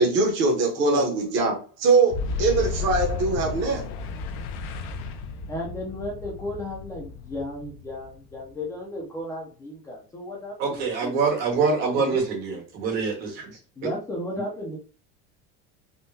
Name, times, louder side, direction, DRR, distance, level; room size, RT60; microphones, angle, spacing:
voice 1, 0.0-3.8, right 3 dB, 40° right, 0 dB, 0.7 m, -22 dB
voice 2, 0.8-1.1 5.5-11.2 12.0-12.2 13.8-14.8, left 1 dB, 10° left, -3 dB, 0.3 m, -34 dB
Boom, 2.1-8.7, left 4 dB, 85° left, 0.6 m, -33 dB
voice 3, 10.6-13.5, right 5 dB, 80° right, -1 dB, 1.6 m, -25 dB
3.6 x 2.1 x 2.6 m, 0.38 s
cardioid pair, 175°, 29 cm